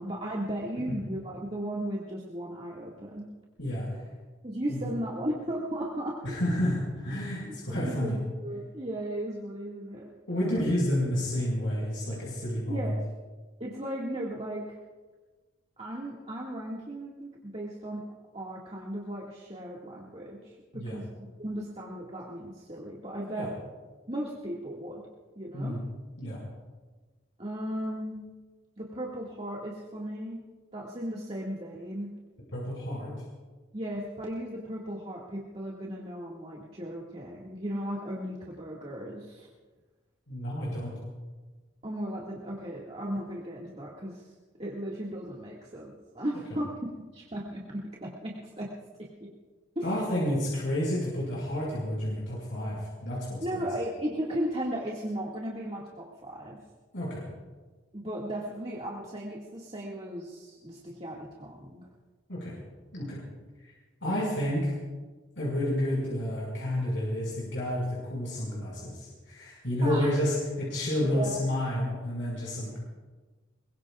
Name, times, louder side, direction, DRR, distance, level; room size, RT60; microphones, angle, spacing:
voice 1, 0.0-3.3 4.4-6.2 7.7-8.2 8.4-10.1 10.4-10.7 12.7-13.0 13.6-14.7 15.8-18.0 18.3-21.1 21.4-23.5 24.1-25.0 25.4-25.8 27.4-28.2 28.8-30.4 30.7-32.1 33.7-39.5 41.8-44.2 44.6-46.7 47.1-48.7 49.2-49.3 49.8-49.9 53.4-56.6 57.9-61.9 69.8-70.1 71.0-71.4, right 1 dB, 30° right, -4 dB, 2.1 m, -36 dB
voice 2, 6.2-8.2 10.3-13.0 20.7-21.0 23.4-23.5 25.5-25.8 26.2-26.4 32.5-33.1 40.3-41.0 49.8-53.6 56.9-57.2 62.3-62.5 62.9-63.2 63.6-63.7 64.0-64.7 65.4-72.8, left 1 dB, 75° left, -5 dB, 5.7 m, -30 dB
22.5 x 22.0 x 2.5 m, 1.3 s
head